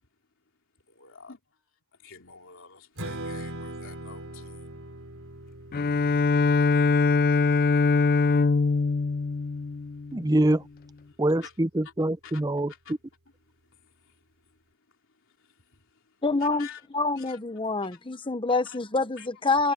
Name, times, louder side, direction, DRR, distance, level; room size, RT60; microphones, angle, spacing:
voice 1, 0.9-1.4 2.0-4.8 5.4-5.5 8.1-8.5 9.4-9.5 11.1-11.5 12.2-13.0 13.7-14.2 14.5-14.6 15.4-16.9 17.1-17.4 17.7-18.0 18.5-18.8 19.2-19.3 19.6-19.7, left 7 dB, 60° left, 3.4 m, -50 dB
Strum, 3.0-9.3, right 1 dB, 65° right, 5.1 m, -41 dB
Bowed string instrument, 5.7-10.4, left 4 dB, 40° left, 0.4 m, -23 dB
voice 2, 10.1-10.6 11.2-12.7, right 1 dB, 15° right, 0.7 m, -24 dB
voice 3, 16.2-19.7, left 3 dB, 25° left, 1.0 m, -27 dB
head